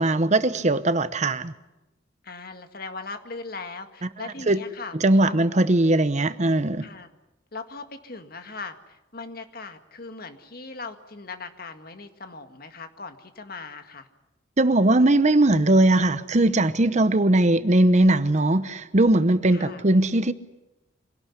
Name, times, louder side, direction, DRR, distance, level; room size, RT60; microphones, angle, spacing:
voice 1, 0.0-1.5 4.5-4.6 4.9-6.9 14.6-20.3, right 2 dB, 40° right, 13 dB, 0.9 m, -20 dB
voice 2, 2.2-5.3 6.8-7.1 7.5-14.1 19.5-19.8, left 4 dB, 50° left, 7 dB, 1.9 m, -39 dB
25.5 x 18.0 x 9.9 m, 0.97 s
head